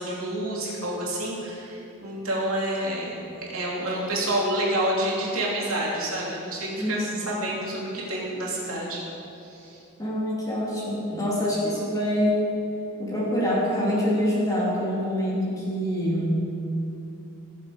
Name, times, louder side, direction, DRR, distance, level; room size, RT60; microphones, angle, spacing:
voice 1, 0.0-3.2 3.5-9.0 9.4-9.8, right 1 dB, 75° right, -5 dB, 3.0 m, -28 dB
voice 2, 6.8-7.2 10.0-12.4 13.0-16.4, equal, 15° left, -6 dB, 2.9 m, -25 dB
16.5 x 7.3 x 5.0 m, 2.8 s
head